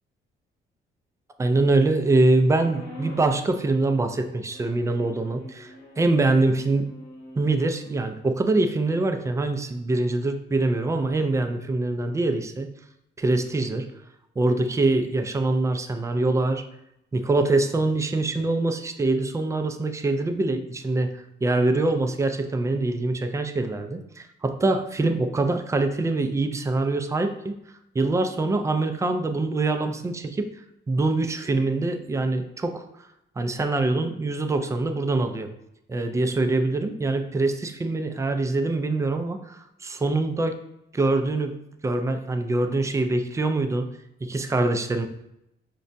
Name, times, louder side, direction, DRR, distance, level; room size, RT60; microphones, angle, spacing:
voice 1, 1.4-6.9 7.4-12.7 13.2-13.9 14.4-16.6 17.1-27.5 27.9-30.5 30.9-32.8 33.4-35.5 35.9-40.6 40.9-41.5 41.8-43.9 44.2-45.1, right 2 dB, 15° right, 7 dB, 0.3 m, -24 dB
sound 1, 2.6-3.5 4.5-8.1, equal, 60° left, 0.9 m, -44 dB
4.8 x 2.2 x 2.6 m, 0.82 s
cardioid pair, 90°, 20 cm